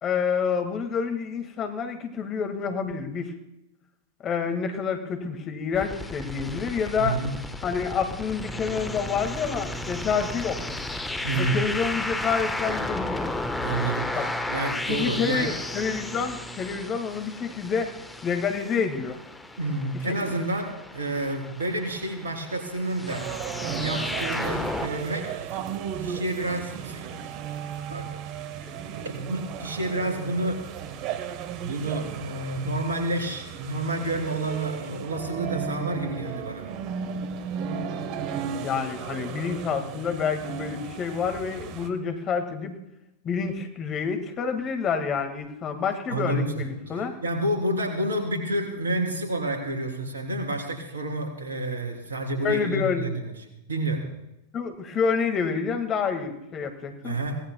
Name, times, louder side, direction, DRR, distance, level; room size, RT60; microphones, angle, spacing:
voice 1, 0.0-3.3 4.2-7.2 7.6-10.8 11.4-13.2 14.1-14.3 14.9-17.9 18.2-19.2 20.1-20.2 28.6-28.7 38.6-42.8 43.2-47.2 52.4-53.1 54.5-57.2, left 6 dB, 30° left, 7 dB, 1.8 m, -28 dB
sound 1, 5.7-24.9, left 1 dB, 5° left, 1.2 m, -34 dB
voice 2, 7.0-7.3 11.2-11.6 13.6-15.5 19.6-23.3 23.8-25.7 26.0-27.0 27.9-28.1 29.0-30.6 31.6-36.7 46.1-53.3 53.7-54.0 57.0-57.4, right 1 dB, 75° right, 2 dB, 3.4 m, -29 dB
sound 2, 23.1-41.9, right 7 dB, 45° right, 1.3 m, -35 dB
24.0 x 18.0 x 2.3 m, 0.89 s
figure-of-eight pair, 95°, 0 cm